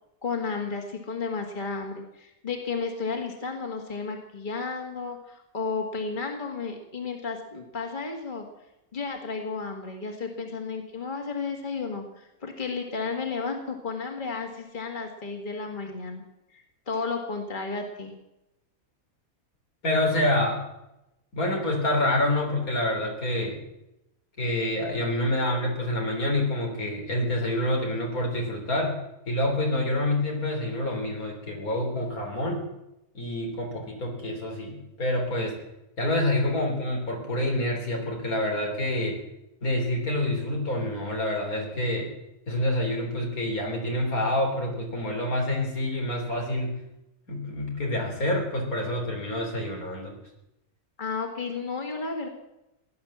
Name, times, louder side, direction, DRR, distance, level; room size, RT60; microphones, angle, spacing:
voice 1, 0.2-8.5 8.9-16.2 16.5-18.1 51.0-52.3, left 4 dB, 35° left, 3 dB, 2.2 m, -33 dB
voice 2, 19.8-20.6 21.3-23.6 24.4-29.0 29.3-32.6 33.1-35.6 36.0-39.2 39.6-42.1 42.5-46.7 47.3-50.2, left 1 dB, 85° left, 1 dB, 4.0 m, -27 dB
17.5 x 11.0 x 7.3 m, 0.91 s
omnidirectional pair, 1.5 m